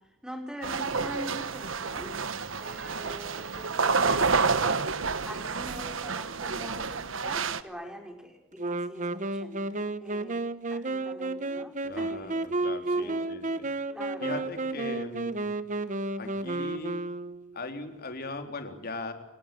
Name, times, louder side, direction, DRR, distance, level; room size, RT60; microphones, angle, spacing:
voice 1, 0.2-2.2 2.6-4.3 4.6-4.9 5.3-9.7 10.0-10.4 10.7-13.3 13.9-14.5, equal, 5° right, 3 dB, 5.4 m, -43 dB
sound 1, 0.6-7.6, right 4 dB, 70° right, 1.3 m, -29 dB
Wind instrument woodwind instrument, 8.6-17.6, right 2 dB, 40° right, 1.2 m, -32 dB
voice 2, 11.8-13.7 14.2-15.5 16.2-17.0 17.5-19.1, left 2 dB, 50° left, 6 dB, 3.8 m, -39 dB
30.0 x 18.0 x 9.0 m, 0.95 s
head